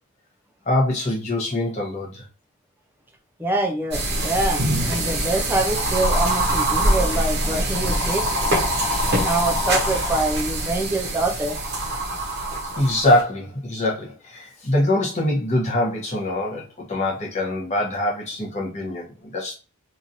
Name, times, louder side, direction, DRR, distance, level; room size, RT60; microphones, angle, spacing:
voice 1, 0.7-2.3 12.8-19.5, left 1 dB, 30° left, -2 dB, 0.9 m, -23 dB
voice 2, 3.4-8.3 9.2-11.6, right 2 dB, 10° right, 2 dB, 0.5 m, -25 dB
sound 1, 3.9-13.2, right 1 dB, 50° right, 0.9 m, -23 dB
3.0 x 2.5 x 2.6 m, 0.34 s
head